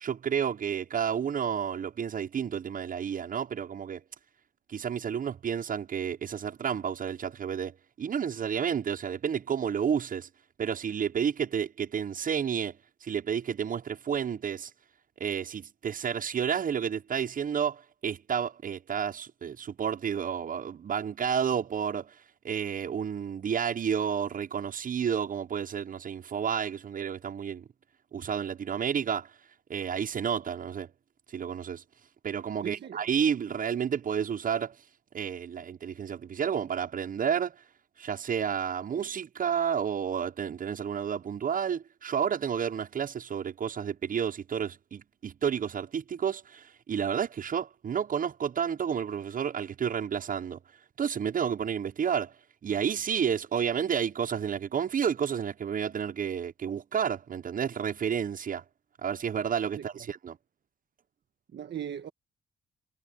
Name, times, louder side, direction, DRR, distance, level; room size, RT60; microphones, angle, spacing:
voice 1, 0.0-4.0 4.7-7.7 8.0-10.3 10.6-12.7 13.0-14.7 15.2-22.1 22.4-27.6 28.1-29.3 29.7-30.9 31.3-31.8 32.2-34.7 35.1-37.5 38.0-50.6 51.0-52.3 52.6-58.6 59.0-60.4, right 7 dB, 45° right, 0.6 m, -31 dB
voice 2, 32.6-33.1 59.8-59.9 61.5-62.1, right 9 dB, 65° right, 1.4 m, -38 dB
cardioid pair, 75°, 20 cm